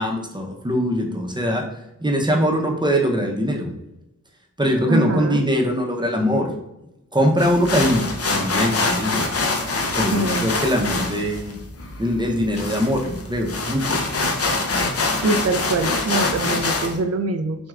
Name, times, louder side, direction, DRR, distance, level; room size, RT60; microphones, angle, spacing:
voice 1, 0.0-1.6 2.0-3.7 4.6-6.5 7.1-9.2 10.0-11.6 12.0-14.0, equal, 15° right, 1 dB, 0.7 m, -22 dB
voice 2, 4.9-5.4 10.1-10.5 15.2-17.6, right 3 dB, 50° right, 8 dB, 0.4 m, -24 dB
sound 1, 7.4-17.0, left 3 dB, 45° left, 0.6 m, -25 dB
6.1 x 2.3 x 2.4 m, 0.89 s
wide cardioid pair, 70°, 32 cm